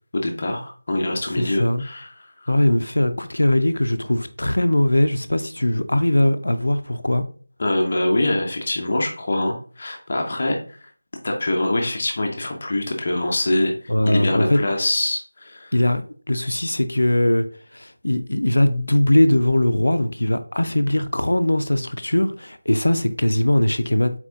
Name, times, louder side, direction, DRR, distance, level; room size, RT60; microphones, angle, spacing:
voice 1, 0.1-2.3 7.6-10.6 11.2-13.7 14.0-15.7, left 1 dB, 35° left, 0.8 m, -24 dB
voice 2, 1.3-1.8 2.5-7.2 13.9-14.6 15.7-16.0 16.3-17.5 17.7-24.1, left 1 dB, 85° left, 0.5 m, -20 dB
4.3 x 4.2 x 2.7 m
figure-of-eight pair, 175°, 0 cm